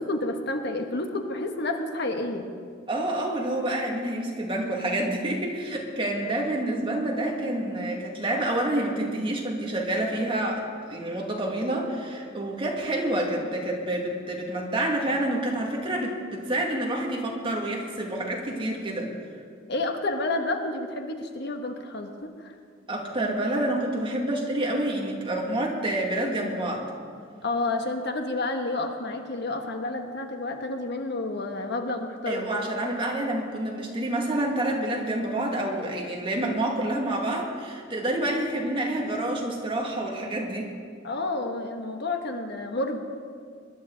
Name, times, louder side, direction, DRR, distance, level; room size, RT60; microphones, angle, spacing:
voice 1, 0.0-2.5 19.7-22.5 27.4-32.6 41.0-43.0, left 2 dB, 60° left, 5 dB, 1.2 m, -30 dB
voice 2, 2.9-19.1 22.9-26.9 32.3-40.7, right 1 dB, 30° right, -1 dB, 2.1 m, -28 dB
22.5 x 11.5 x 3.9 m, 2.1 s
head